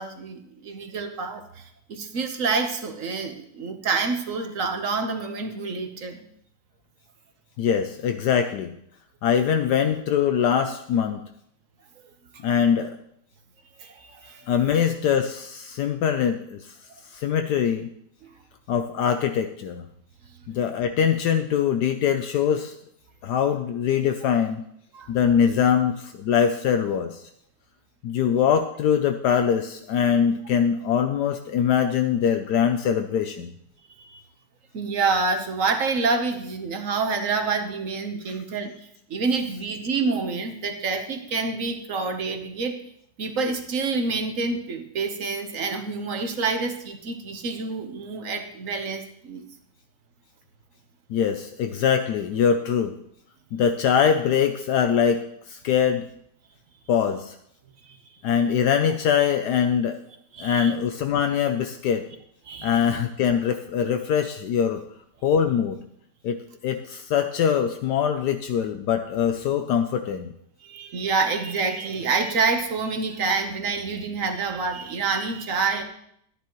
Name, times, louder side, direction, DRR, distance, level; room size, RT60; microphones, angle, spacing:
voice 1, 0.0-6.2 13.8-14.5 24.9-25.1 34.0-34.2 34.7-38.7 39.1-42.8 43.2-49.4 57.8-58.0 60.3-60.7 62.5-62.9 70.6-75.8, right 4 dB, 55° right, 6 dB, 1.3 m, -27 dB
voice 2, 7.6-8.7 9.2-11.2 12.4-13.0 14.5-16.7 17.1-17.9 18.7-19.8 20.5-22.7 23.2-24.6 25.1-27.2 28.0-33.5 51.1-52.9 53.5-56.1 56.9-57.3 58.2-60.0 60.4-62.0 62.6-64.8 65.2-65.8 66.2-70.3, left 8 dB, 75° left, 7 dB, 1.2 m, -23 dB
13.5 x 10.0 x 3.1 m, 0.70 s
omnidirectional pair, 1.8 m